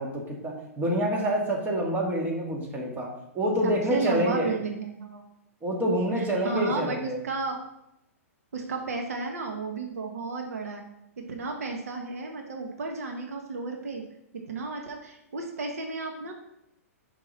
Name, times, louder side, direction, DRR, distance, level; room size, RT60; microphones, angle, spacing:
voice 1, 0.0-4.6 5.6-7.2, equal, 20° right, -1 dB, 2.0 m, -27 dB
voice 2, 3.6-5.3 6.1-7.6 8.5-10.8 11.2-14.0 14.3-16.3, right 4 dB, 75° right, 2 dB, 1.2 m, -33 dB
5.9 x 4.6 x 5.5 m, 0.82 s
hypercardioid pair, 120°, 8 cm